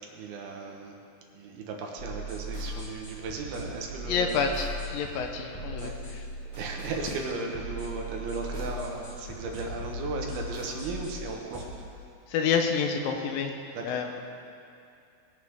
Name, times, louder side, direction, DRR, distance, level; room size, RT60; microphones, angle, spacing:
voice 1, 0.1-0.9 1.3-4.4 5.8-5.9 6.5-11.7 13.7-13.8, right 3 dB, 75° right, 1 dB, 3.1 m, -36 dB
sound 1, 2.0-11.7, equal, 15° left, 2.9 m, -38 dB
voice 2, 4.1-6.2 12.3-13.5 13.8-14.2, left 6 dB, 70° left, 4 dB, 2.4 m, -28 dB
21.0 x 10.0 x 3.7 m, 2.5 s
omnidirectional pair, 4.7 m